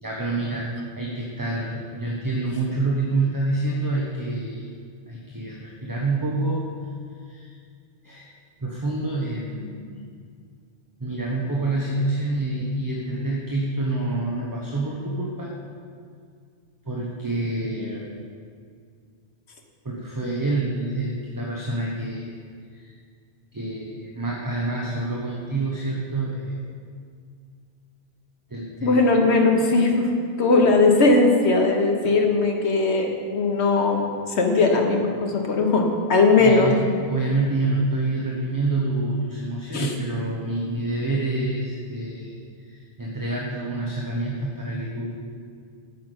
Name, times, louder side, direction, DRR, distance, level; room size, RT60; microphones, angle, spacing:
voice 1, 0.0-4.7 5.1-6.7 7.3-7.5 8.0-8.3 8.6-10.0 11.0-15.5 16.8-18.0 19.8-22.4 22.7-22.9 23.5-26.6 28.5-29.0 36.4-45.1, right 2 dB, 20° right, -3 dB, 1.0 m, -27 dB
voice 2, 28.8-30.1 30.4-36.7 39.7-39.9, left 3 dB, 90° left, 2 dB, 1.4 m, -19 dB
9.2 x 5.8 x 8.1 m, 2.2 s
omnidirectional pair, 1.1 m